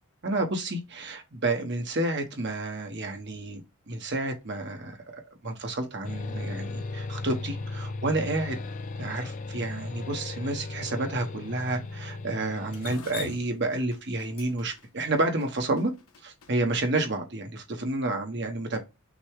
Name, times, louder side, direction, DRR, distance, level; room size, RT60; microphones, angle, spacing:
voice 1, 0.2-3.6 3.9-8.6 9.0-15.9 16.2-18.8, right 2 dB, 50° right, 1.0 m, -30 dB
sound 1, 6.0-13.0, left 3 dB, 35° left, 0.3 m, -36 dB
Drip, 12.7-16.9, left 5 dB, 70° left, 0.8 m, -42 dB
6.0 x 2.2 x 3.5 m
head